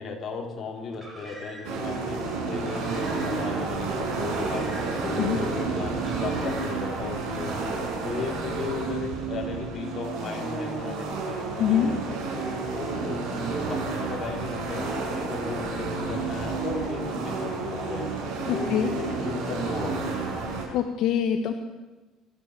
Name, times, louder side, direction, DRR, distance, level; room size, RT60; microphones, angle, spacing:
voice 1, 0.0-12.2 12.7-20.2, left 4 dB, 30° left, 0 dB, 4.6 m, -36 dB
Car, 0.9-1.8 2.5-3.5 4.2-5.2 5.9-6.9, right 1 dB, 15° right, 5.8 m, -44 dB
sound 1, 1.6-20.6, right 4 dB, 85° right, 7.6 m, -30 dB
voice 2, 11.6-11.9 18.4-18.9 20.7-21.5, left 9 dB, 60° left, 6 dB, 1.5 m, -24 dB
27.0 x 13.5 x 8.6 m, 1.2 s
cardioid pair, 145°, 0 cm